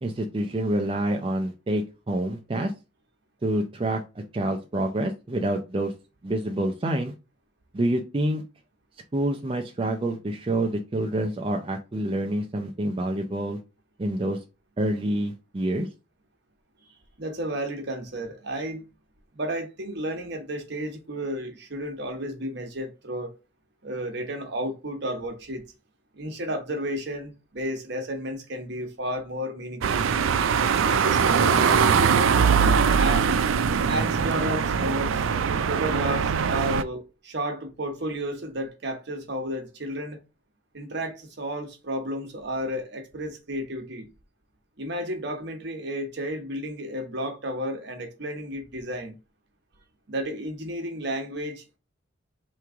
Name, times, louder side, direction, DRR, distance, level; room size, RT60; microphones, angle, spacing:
voice 1, 0.0-2.7 3.4-4.0 4.3-5.9 6.2-7.1 7.7-8.4 9.1-13.6 14.0-14.4 14.8-15.9, right 1 dB, 25° right, 0.4 m, -27 dB
voice 2, 17.2-18.8 19.3-23.3 23.8-25.6 26.1-30.1 30.8-32.4 32.9-33.3 33.9-40.2 40.7-44.1 44.8-49.1 50.1-51.8, right 1 dB, 60° right, 1.1 m, -32 dB
sound 1, 29.8-36.8, right 6 dB, 90° right, 0.4 m, -22 dB
3.4 x 3.1 x 4.8 m
head